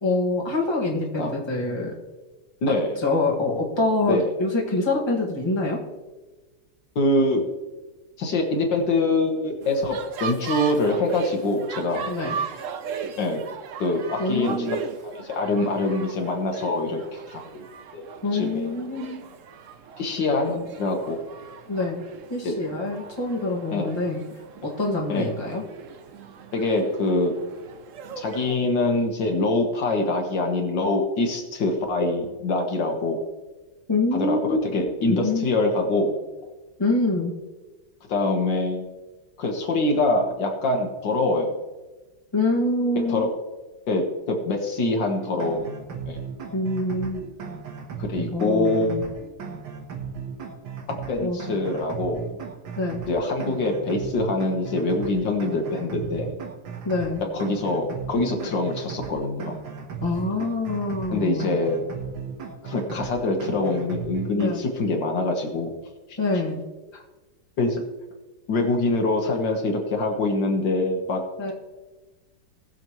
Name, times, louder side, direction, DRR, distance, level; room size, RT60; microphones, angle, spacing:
voice 1, 0.0-1.9 2.7-2.8 3.0-5.8 12.1-12.4 14.2-14.7 18.2-19.2 20.5-20.6 21.7-22.0 22.3-24.2 24.6-25.6 33.9-34.6 35.1-35.4 36.8-37.3 42.3-43.3 46.5-47.2 48.2-49.1 51.2-51.4 52.8-53.0 56.8-57.2 60.0-61.6 64.4-64.6 66.2-66.6 71.4-71.5, left 2 dB, 15° left, -3 dB, 1.8 m, -25 dB
voice 2, 2.6-3.0 4.0-4.2 7.0-7.4 8.2-12.1 13.2-13.4 13.8-17.0 17.3-17.6 17.9-18.0 18.3-18.7 20.0-21.2 22.4-22.5 23.7-24.0 25.1-25.3 26.5-27.3 28.2-33.2 34.1-36.2 38.1-38.9 39.4-41.5 43.1-43.3 43.9-45.8 46.1-46.2 48.0-49.0 51.1-52.3 53.1-56.4 57.3-59.6 61.1-61.9 62.6-65.7 66.1-66.2 67.6-67.8 68.5-71.2, left 2 dB, 70° left, 2 dB, 2.0 m, -24 dB
sound 1, 9.6-28.6, right 6 dB, 60° right, 0.9 m, -38 dB
sound 2, 45.2-64.5, right 6 dB, 90° right, 2.0 m, -36 dB
19.0 x 7.1 x 3.1 m, 1.2 s
omnidirectional pair, 2.0 m